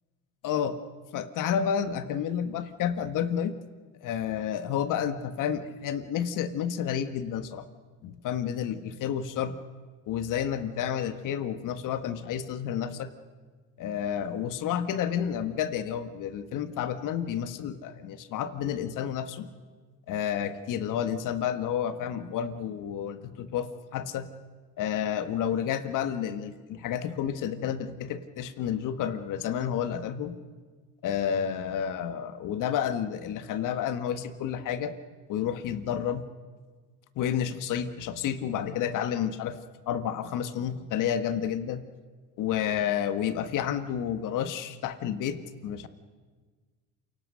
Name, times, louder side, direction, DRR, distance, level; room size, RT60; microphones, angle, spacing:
voice 1, 0.4-0.8 1.1-3.5 4.0-7.7 8.0-9.6 10.1-13.1 13.8-19.5 20.1-24.3 24.8-30.3 31.0-34.9 35.3-36.2 37.1-39.6 39.9-41.8 42.4-45.9, left 9 dB, 55° left, 10 dB, 1.7 m, -30 dB
28.0 x 18.0 x 6.5 m, 1.4 s
supercardioid pair, 90°, 37 cm